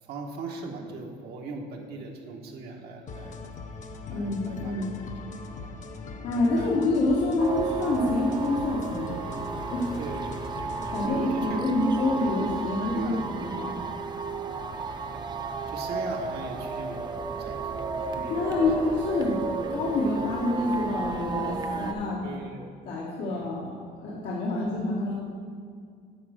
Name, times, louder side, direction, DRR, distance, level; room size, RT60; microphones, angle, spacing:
voice 1, 0.0-3.4 4.1-4.9 5.5-5.7 6.4-6.9 10.0-10.3 11.0-11.6 12.0-13.2 14.7-15.2 15.7-18.9 22.2-22.7 23.3-23.5 24.5-24.6, right 3 dB, 75° right, 1 dB, 1.2 m, -40 dB
sound 1, 3.1-11.1, left 4 dB, 45° left, 0.8 m, -41 dB
voice 2, 4.1-4.9 6.2-9.1 9.7-10.0 10.9-13.7 18.3-22.2 22.9-23.7 24.0-25.1, left 2 dB, 85° left, -6 dB, 1.4 m, -27 dB
sound 2, 7.4-21.9, right 4 dB, 25° right, 0.6 m, -33 dB
9.7 x 4.2 x 6.5 m, 2.2 s
cardioid pair, 110°, 17 cm